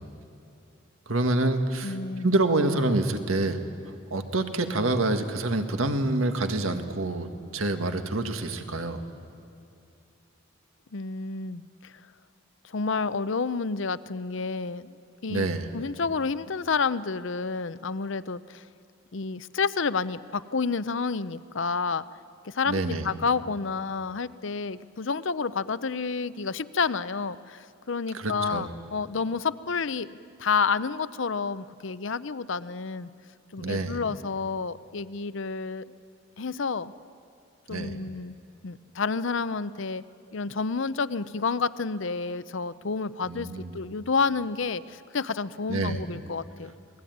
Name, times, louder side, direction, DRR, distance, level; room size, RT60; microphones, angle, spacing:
voice 1, 1.1-2.0 2.2-3.6 4.1-9.0 15.3-15.7 22.7-23.1 28.1-28.7 33.6-34.0 37.7-38.0 43.3-43.8 45.7-46.0, right 2 dB, 80° right, 6 dB, 1.8 m, -27 dB
voice 2, 1.8-2.3 10.9-11.9 12.6-15.0 15.2-15.5 15.7-18.6 19.1-22.0 22.4-33.1 33.5-35.8 36.4-36.9 37.7-38.3 38.6-40.0 40.3-46.7, left 4 dB, 60° left, 15 dB, 0.7 m, -30 dB
27.5 x 20.5 x 9.4 m, 2.5 s
head